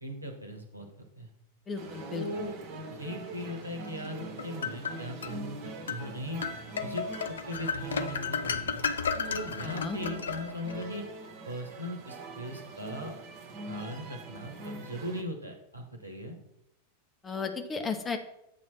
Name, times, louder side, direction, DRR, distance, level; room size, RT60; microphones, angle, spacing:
voice 1, 0.0-1.3 2.1-2.6 2.9-6.4 6.8-8.8 9.3-11.0 11.4-13.1 13.7-16.4, equal, 85° right, 3 dB, 1.2 m, -39 dB
voice 2, 1.7-2.2 9.6-10.0 17.2-18.2, left 5 dB, 20° left, 5 dB, 1.0 m, -34 dB
sound 1, 1.8-15.2, right 2 dB, 45° right, 1.3 m, -43 dB
sound 2, 4.0-5.4 5.9-6.0 6.4-10.8, left 6 dB, 65° left, 0.5 m, -33 dB
8.2 x 3.1 x 5.9 m, 0.82 s
figure-of-eight pair, 90°, 0 cm